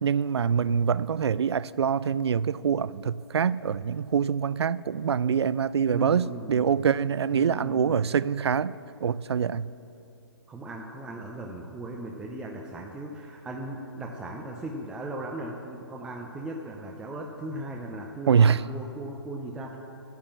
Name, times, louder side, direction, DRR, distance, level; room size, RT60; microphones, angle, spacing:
voice 1, 0.0-8.8 9.0-9.7 18.3-18.6, right 7 dB, 75° right, 0.4 m, -25 dB
voice 2, 5.9-6.8 7.3-8.0 10.5-19.8, right 1 dB, 5° right, 0.6 m, -38 dB
10.5 x 10.0 x 7.3 m
hypercardioid pair, 145°, 14 cm